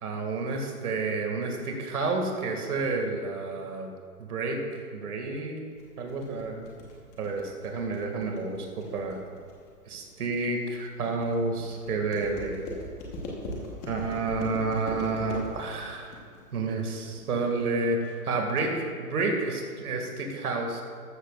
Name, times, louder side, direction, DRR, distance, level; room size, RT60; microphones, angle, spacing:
voice 1, 0.0-3.9 4.3-4.6 4.9-5.6 6.0-6.6 7.2-9.2 9.9-12.6 13.9-16.2 16.5-18.0 18.2-20.8, right 3 dB, 65° right, 2 dB, 2.3 m, -30 dB
sound 1, 5.8-17.8, left 1 dB, 15° left, 1.2 m, -41 dB
14.0 x 12.5 x 2.5 m, 2.3 s
hypercardioid pair, 165°, 47 cm